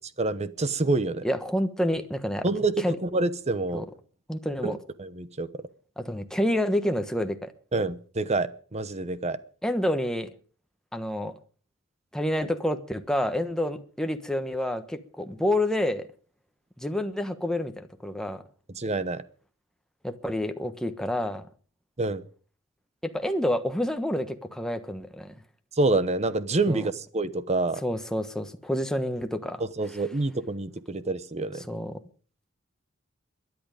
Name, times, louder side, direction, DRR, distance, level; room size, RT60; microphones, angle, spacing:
voice 1, 0.2-1.3 2.4-3.9 4.6-5.5 7.7-9.4 18.7-19.2 22.0-22.2 25.8-27.8 29.8-31.7, right 2 dB, 35° right, 0.9 m, -27 dB
voice 2, 1.2-2.4 2.8-3.0 3.7-3.8 4.3-4.8 6.0-7.5 9.6-10.3 10.9-11.3 12.1-16.1 16.8-18.4 20.0-21.4 23.0-25.3 26.7-26.9 27.8-29.6 31.7-32.0, left 1 dB, 5° left, 1.2 m, -28 dB
22.0 x 11.0 x 5.1 m
head